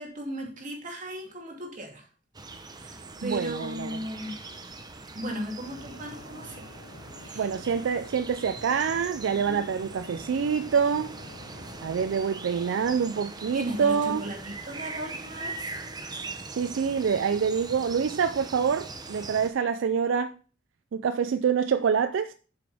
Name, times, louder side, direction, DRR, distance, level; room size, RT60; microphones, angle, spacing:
voice 1, 0.0-2.1 2.8-4.3 5.1-6.7 7.2-7.5 9.3-9.7 12.5-12.7 13.5-15.7, equal, 40° right, 2.6 m, -36 dB
sound 1, 2.3-19.5, right 3 dB, 20° right, 0.8 m, -41 dB
voice 2, 3.2-3.9 7.4-11.2 11.8-14.2 16.5-20.3 20.9-22.3, right 6 dB, 70° right, 0.4 m, -26 dB
sound 2, 5.6-12.1, left 1 dB, 60° left, 1.2 m, -48 dB
7.7 x 6.8 x 3.4 m
head